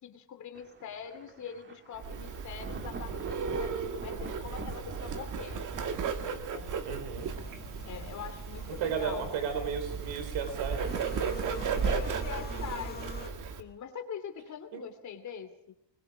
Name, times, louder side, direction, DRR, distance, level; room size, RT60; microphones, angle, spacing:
voice 1, 0.0-5.6 6.2-6.7 7.8-9.3 11.7-15.7, left 7 dB, 40° left, 7 dB, 2.8 m, -43 dB
Thunder, 0.5-6.9, right 3 dB, 25° right, 1.7 m, -47 dB
Bird, 2.0-13.6, right 6 dB, 40° right, 2.0 m, -35 dB
voice 2, 6.8-7.3 8.7-11.8 14.7-14.8, right 7 dB, 75° right, 6 dB, 4.2 m, -35 dB
sound 1, 7.2-13.3, left 5 dB, 20° left, 1.6 m, -47 dB
25.5 x 21.5 x 5.0 m, 0.75 s
cardioid pair, 165°, 45 cm